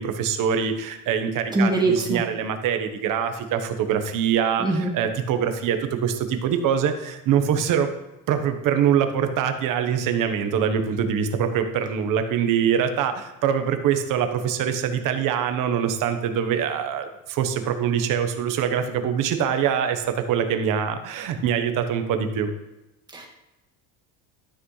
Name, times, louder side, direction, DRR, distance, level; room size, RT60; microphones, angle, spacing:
voice 1, 0.0-7.9 8.3-22.5, right 8 dB, 60° right, 7 dB, 1.1 m, -24 dB
voice 2, 1.5-2.2 4.6-4.9 23.1-23.3, right 2 dB, 10° right, 0 dB, 1.8 m, -22 dB
13.0 x 5.9 x 3.2 m, 1.0 s
cardioid pair, 140°, 37 cm